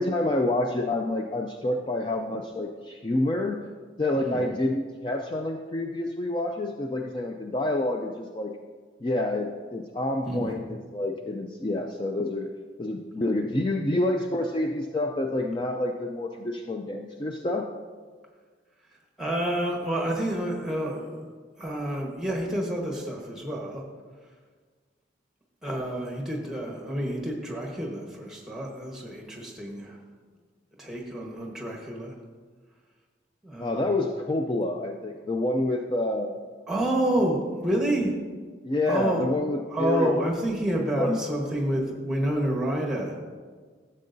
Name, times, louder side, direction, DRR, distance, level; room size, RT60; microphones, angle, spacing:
voice 1, 0.0-3.7 4.0-8.5 9.0-10.6 10.9-12.5 12.8-17.7 33.6-36.3 38.6-40.2 40.9-41.2, left 1 dB, 25° left, 2 dB, 0.4 m, -28 dB
voice 2, 4.2-4.5 10.2-10.5 19.2-21.2 21.6-23.8 25.6-30.0 30.8-32.1 33.4-34.0 36.7-38.1 38.9-39.2 39.7-43.2, right 1 dB, 5° right, -1 dB, 1.2 m, -29 dB
13.0 x 7.5 x 2.6 m, 1.5 s
head